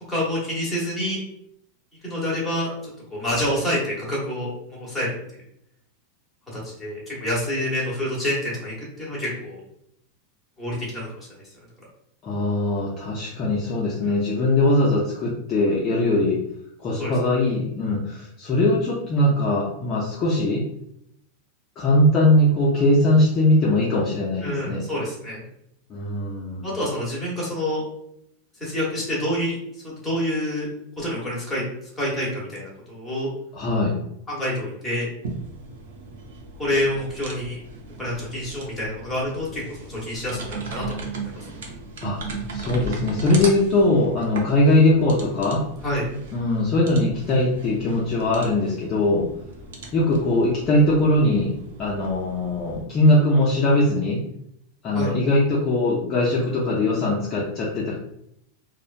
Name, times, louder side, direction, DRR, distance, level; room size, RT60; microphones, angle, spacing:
voice 1, 0.1-1.2 2.0-2.7 3.1-5.1 6.5-9.6 10.6-11.4 14.0-14.2 17.0-17.1 24.4-25.4 26.6-27.8 28.6-29.6 29.8-30.7 31.0-31.6 32.0-33.3 34.3-35.1 36.6-37.6 38.0-41.4 45.8-46.1 54.9-55.1, left 1 dB, 5° left, -7 dB, 1.0 m, -27 dB
voice 2, 12.2-16.4 16.8-20.7 21.8-24.8 25.9-26.7 33.5-34.0 42.0-42.2 42.5-45.6 46.3-49.3 49.9-51.5 51.8-54.2 54.8-58.0, left 1 dB, 25° left, -5 dB, 0.4 m, -21 dB
sound 1, 35.2-52.8, right 3 dB, 85° right, 0.5 m, -37 dB
2.8 x 2.0 x 2.4 m, 0.76 s
supercardioid pair, 160°, 0 cm